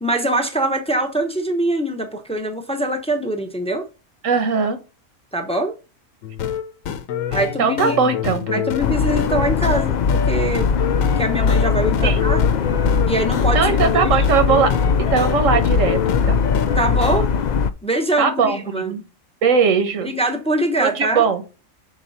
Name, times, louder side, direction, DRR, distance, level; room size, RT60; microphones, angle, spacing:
voice 1, 0.0-3.9 5.3-5.8 7.3-8.0 8.5-10.7 11.2-12.4 13.1-14.2 16.7-17.3 17.8-18.9 20.0-21.2, right 1 dB, 5° left, 0.8 m, -23 dB
voice 2, 4.2-4.8 7.6-8.7 12.0-12.3 13.5-14.7 15.0-16.4 18.2-19.0 19.4-20.1 20.8-21.4, right 6 dB, 80° right, 1.4 m, -20 dB
sound 1, 6.2-17.2, left 8 dB, 90° left, 1.1 m, -27 dB
sound 2, 8.8-17.7, left 6 dB, 60° left, 0.4 m, -20 dB
6.5 x 4.5 x 4.1 m
omnidirectional pair, 1.3 m